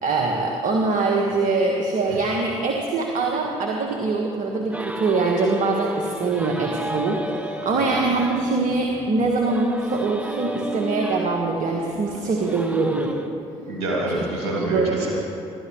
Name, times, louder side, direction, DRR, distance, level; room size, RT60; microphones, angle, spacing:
voice 1, 0.0-13.2 14.6-15.1, right 3 dB, 60° right, 0 dB, 1.6 m, -23 dB
sound 1, 4.7-13.3, equal, 10° right, 1.3 m, -34 dB
voice 2, 13.7-15.1, right 1 dB, 80° right, -4 dB, 2.6 m, -26 dB
25.0 x 12.5 x 3.2 m, 2.7 s
hypercardioid pair, 50°, 15 cm